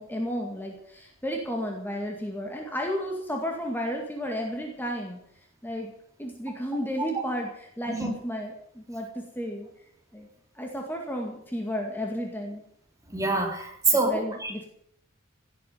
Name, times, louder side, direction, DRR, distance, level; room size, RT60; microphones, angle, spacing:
voice 1, 0.0-5.2 5.6-5.9 6.2-7.5 7.8-9.7 10.1-10.3 10.5-12.6 14.1-14.6, equal, 10° left, 1 dB, 2.0 m, -32 dB
voice 2, 13.1-14.5, right 3 dB, 15° right, 2 dB, 3.1 m, -26 dB
17.0 x 8.5 x 9.4 m, 0.70 s
head